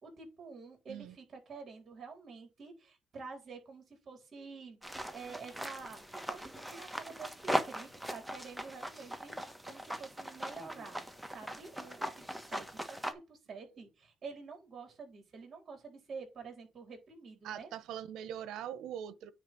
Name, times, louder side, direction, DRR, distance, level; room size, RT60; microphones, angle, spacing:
voice 1, 0.0-11.0 11.3-17.7, right 4 dB, 45° right, 3.9 m, -48 dB
sound 1, 4.8-13.1, equal, 5° right, 1.3 m, -40 dB
voice 2, 17.4-19.3, right 9 dB, 85° right, 0.8 m, -42 dB
9.4 x 3.2 x 5.2 m
cardioid pair, 90°, 0 cm